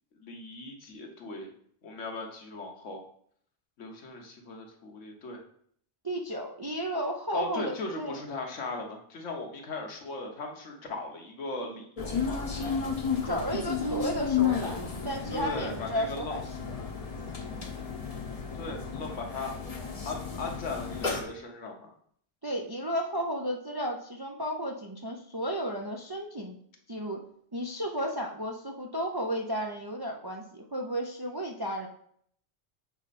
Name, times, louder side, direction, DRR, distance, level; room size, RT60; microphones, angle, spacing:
voice 1, 0.1-1.5 1.8-3.0 3.8-5.4 7.3-12.4 15.3-16.4 18.5-19.6 20.0-21.9, left 3 dB, 75° left, 2 dB, 1.4 m, -38 dB
voice 2, 6.0-8.2 13.2-14.8 15.0-16.8 17.5-17.7 22.4-26.6 26.9-27.2 27.5-31.9, equal, 30° right, 1 dB, 0.4 m, -33 dB
sound 1, 12.0-21.2, left 6 dB, 35° left, 0.9 m, -33 dB
7.2 x 4.2 x 4.2 m, 0.64 s
omnidirectional pair, 1.3 m